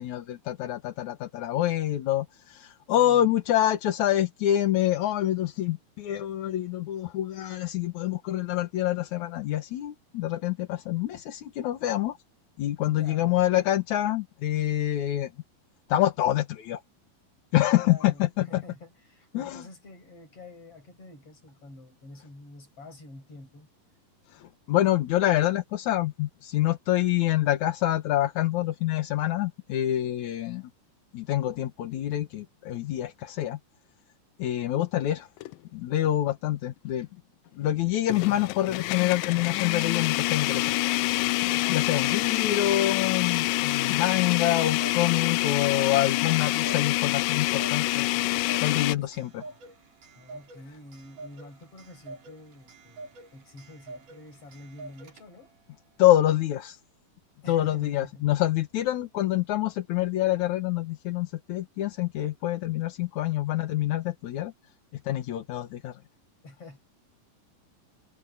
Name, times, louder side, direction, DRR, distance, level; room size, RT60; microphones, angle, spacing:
voice 1, 0.0-12.2 12.6-15.3 15.9-16.8 17.5-18.6 19.3-19.6 24.3-30.6 31.1-33.6 34.4-35.3 35.7-37.1 37.6-40.7 41.4-48.1 48.6-49.4 56.0-56.8 57.5-64.5 65.0-65.9, left 13 dB, 65° left, 2.4 m, -26 dB
voice 2, 2.9-3.4 12.9-13.4 17.8-23.7 41.5-42.3 49.0-49.6 50.2-55.5 57.4-58.3 66.4-66.8, left 2 dB, 40° left, 7.8 m, -48 dB
sound 1, 35.4-35.5 36.0-36.1 38.1-49.0, left 19 dB, 80° left, 2.2 m, -26 dB
Clock, 44.0-55.6, right 3 dB, 60° right, 5.4 m, -47 dB
omnidirectional pair, 4.1 m